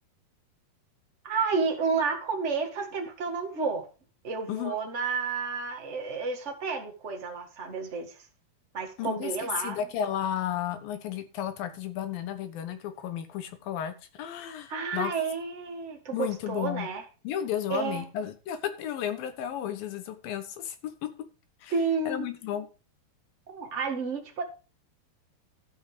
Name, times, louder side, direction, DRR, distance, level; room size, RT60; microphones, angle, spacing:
voice 1, 1.2-3.9 4.2-8.2 8.7-9.8 14.7-17.0 17.7-18.0 21.7-22.3 23.5-24.4, right 5 dB, 40° right, 0.9 m, -31 dB
voice 2, 9.0-15.1 16.1-16.9 17.2-20.8 21.0-21.1 21.6-21.7 22.1-22.7, left 10 dB, 70° left, 2.8 m, -33 dB
13.5 x 5.7 x 5.0 m
omnidirectional pair, 4.5 m